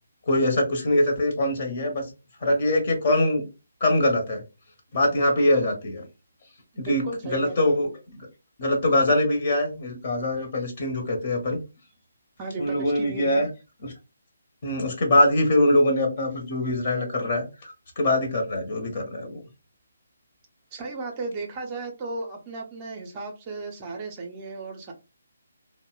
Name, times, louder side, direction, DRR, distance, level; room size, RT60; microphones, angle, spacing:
voice 1, 0.3-2.0 2.4-3.5 3.8-4.4 4.9-6.0 6.8-7.0 7.3-7.9 8.6-11.6 12.6-13.5 14.6-19.4, left 1 dB, 40° left, 2 dB, 0.8 m, -23 dB
voice 2, 6.7-7.8 12.4-13.5 20.7-24.9, right 3 dB, 25° right, 2 dB, 0.5 m, -35 dB
2.8 x 2.0 x 2.3 m, 0.27 s
figure-of-eight pair, 140°, 0 cm